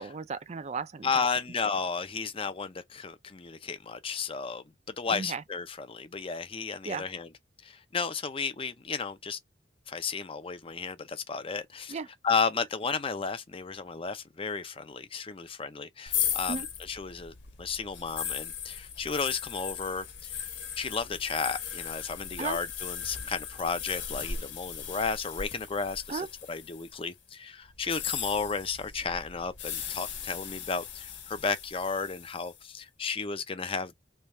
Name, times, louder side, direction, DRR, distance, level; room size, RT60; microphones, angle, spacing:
voice 1, 0.0-1.2 5.1-5.4 6.9-7.1 11.9-12.1 16.5-16.7 22.4-22.6 26.1-26.3, right 5 dB, 35° right, 0.4 m, -35 dB
voice 2, 1.0-4.6 5.0-7.3 7.6-9.4 9.9-12.0 12.2-20.5 20.8-33.9, left 5 dB, 30° left, 0.5 m, -33 dB
sound 1, 16.1-27.0 27.8-32.6, left 8 dB, 70° left, 1.3 m, -37 dB
3.4 x 2.4 x 4.1 m
head